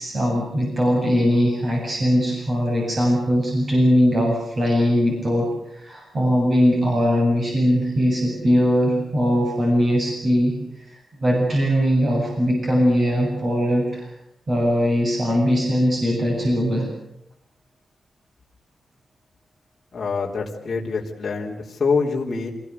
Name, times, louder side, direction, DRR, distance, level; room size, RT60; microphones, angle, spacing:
voice 1, 0.0-10.5 10.9-14.1 14.5-16.9, equal, 30° right, -1 dB, 7.8 m, -20 dB
voice 2, 19.9-22.5, left 4 dB, 35° left, -3 dB, 3.9 m, -25 dB
27.5 x 19.0 x 8.3 m, 0.79 s
wide cardioid pair, 180°, 0 cm